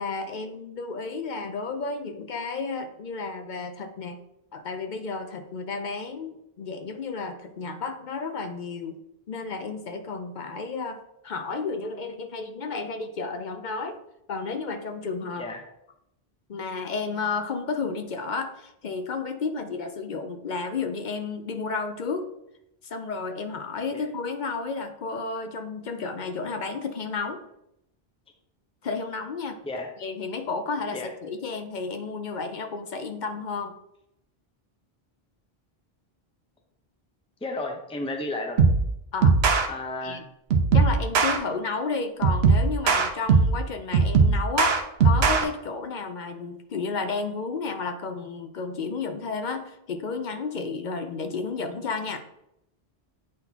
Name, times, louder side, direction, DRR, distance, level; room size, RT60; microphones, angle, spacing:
voice 1, 0.0-4.2 4.5-9.0 9.3-14.0 14.3-15.5 16.5-22.3 22.8-27.4 28.8-29.6 30.0-33.8 39.1-39.4 40.0-40.3 40.7-52.2, left 4 dB, 55° left, 7 dB, 0.7 m, -32 dB
voice 2, 37.4-38.6 39.7-40.2, left 2 dB, 5° left, 3 dB, 0.6 m, -32 dB
sound 1, 38.6-38.9 39.2-39.7 40.5-41.4 42.2-43.6 43.9-45.4, right 4 dB, 80° right, 0.9 m, -19 dB
8.7 x 4.0 x 2.8 m, 0.80 s
omnidirectional pair, 1.0 m